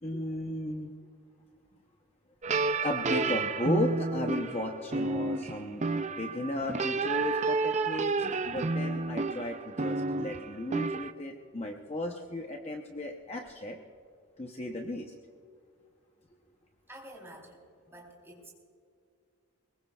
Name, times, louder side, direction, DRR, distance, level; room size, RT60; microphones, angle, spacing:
voice 1, 0.0-0.9 2.8-13.8 14.4-15.1, left 1 dB, 30° left, 2 dB, 0.8 m, -35 dB
sound 1, 2.4-11.1, right 3 dB, 30° right, 0.5 m, -31 dB
voice 2, 16.9-17.6 17.9-18.5, right 1 dB, 10° right, -2 dB, 3.7 m, -49 dB
23.0 x 21.0 x 2.4 m, 2.3 s
head